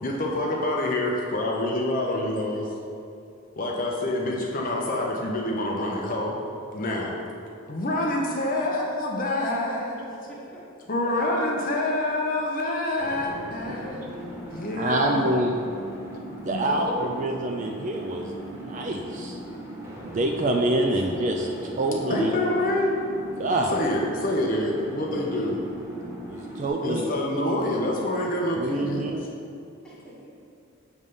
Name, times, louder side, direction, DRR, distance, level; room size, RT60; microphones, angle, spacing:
voice 1, 0.0-2.7 3.6-6.4 6.7-7.2 7.7-10.1 10.9-14.1 14.5-15.3 16.5-16.9 22.1-22.9 23.7-25.6 26.8-29.1, left 1 dB, 40° left, -2 dB, 0.6 m, -27 dB
voice 2, 10.1-11.6 14.4-14.9 29.8-30.4, right 1 dB, 5° left, -8 dB, 1.3 m, -48 dB
sound 1, 13.0-26.7, right 1 dB, 10° right, 0.9 m, -39 dB
voice 3, 14.8-15.5 16.5-19.4 20.0-21.5 21.7-22.3 23.4-23.7 26.3-27.0 28.5-29.2, right 1 dB, 35° right, 2 dB, 0.3 m, -26 dB
7.1 x 3.2 x 5.3 m, 2.5 s
head